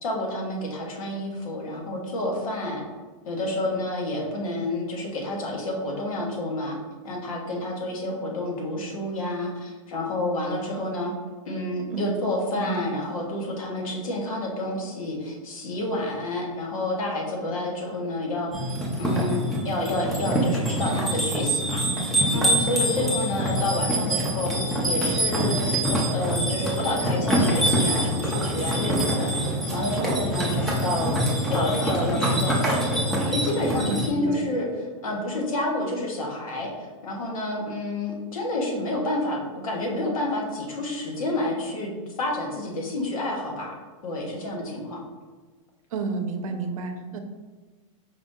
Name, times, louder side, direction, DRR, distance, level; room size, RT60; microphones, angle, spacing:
voice 1, 0.0-2.8 3.2-6.8 7.0-11.1 11.5-18.5 19.0-24.5 24.8-43.7 44.0-45.0, left 1 dB, 85° left, 0 dB, 1.3 m, -29 dB
voice 2, 12.6-12.9 33.8-34.3 45.9-47.2, right 4 dB, 90° right, 6 dB, 0.6 m, -30 dB
sound 1, 18.5-34.1, equal, ahead, 0.4 m, -25 dB
4.8 x 2.7 x 3.6 m, 1.3 s
supercardioid pair, 170°, 17 cm